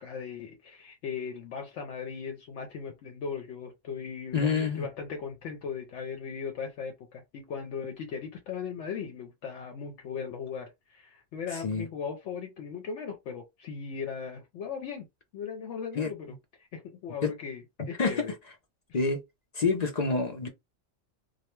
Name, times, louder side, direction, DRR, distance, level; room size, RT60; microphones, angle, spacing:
voice 1, 0.0-15.1 15.3-18.3, left 6 dB, 70° left, 0.8 m, -38 dB
voice 2, 4.3-4.9 11.6-11.9 16.0-16.1 17.2-17.3 18.0-18.1 18.9-19.2 19.5-20.5, left 4 dB, 55° left, 0.4 m, -27 dB
2.3 x 2.1 x 3.0 m
omnidirectional pair, 1.3 m